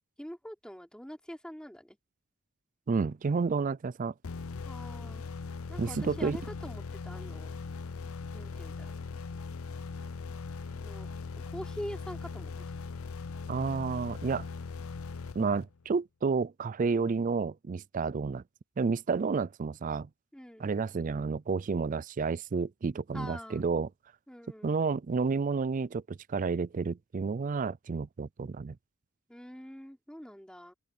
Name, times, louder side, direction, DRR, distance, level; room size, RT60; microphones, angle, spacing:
voice 1, 0.2-2.0 4.6-5.2 5.7-7.5 8.3-8.9 10.7-11.1 11.5-12.6 20.3-20.6 23.1-23.6 24.3-24.7 29.3-30.7, equal, 5° left, 3.5 m, -44 dB
voice 2, 2.9-4.1 5.8-6.4 13.5-14.5 15.3-18.4 18.8-20.1 20.6-23.9 24.6-28.8, right 4 dB, 35° right, 0.3 m, -30 dB
sound 1, 4.2-15.9, left 4 dB, 80° left, 0.6 m, -40 dB
open air
head